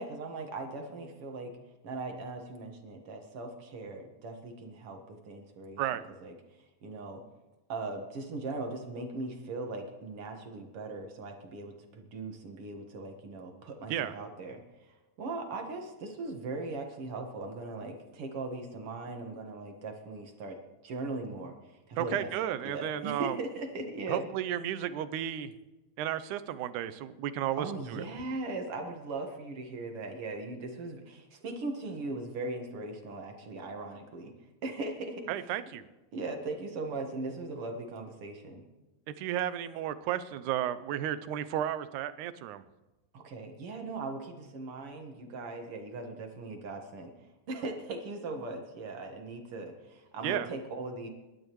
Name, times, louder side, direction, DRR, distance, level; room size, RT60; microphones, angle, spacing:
voice 1, 0.0-1.5 1.8-6.3 6.8-7.2 7.7-14.6 15.2-20.6 20.8-22.3 22.6-24.3 27.6-34.3 34.6-35.5 36.1-38.6 43.1-47.1 47.5-51.1, right 3 dB, 50° right, 4 dB, 2.2 m, -39 dB
voice 2, 22.0-23.4 24.1-25.5 26.0-27.7 27.9-28.0 35.3-35.9 39.2-42.6 50.2-50.5, right 11 dB, 80° right, 13 dB, 2.1 m, -33 dB
26.0 x 12.0 x 3.1 m, 1.1 s
omnidirectional pair, 3.6 m